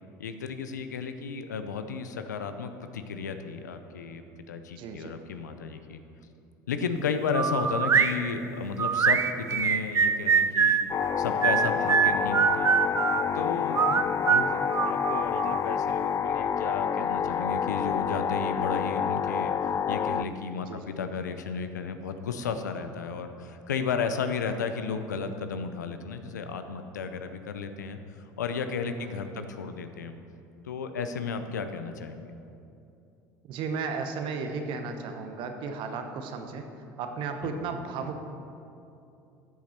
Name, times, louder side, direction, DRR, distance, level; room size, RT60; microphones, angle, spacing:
voice 1, 0.2-6.0 6.7-10.8 11.2-12.7 13.3-13.8 14.3-28.0 28.4-30.1 30.6-32.3 37.4-37.6, left 5 dB, 90° left, 8 dB, 0.6 m, -33 dB
voice 2, 4.8-5.1 13.7-14.0 20.6-20.9 29.0-29.6 33.5-36.7 37.0-38.2, right 5 dB, 60° right, 6 dB, 1.1 m, -35 dB
sound 1, 7.3-8.1 8.8-10.9 11.4-13.2 13.7-15.6, right 7 dB, 30° right, 0.5 m, -23 dB
sound 2, 10.9-20.2, left 7 dB, 35° left, 0.4 m, -28 dB
13.5 x 7.3 x 4.4 m, 2.7 s
hypercardioid pair, 70°, 9 cm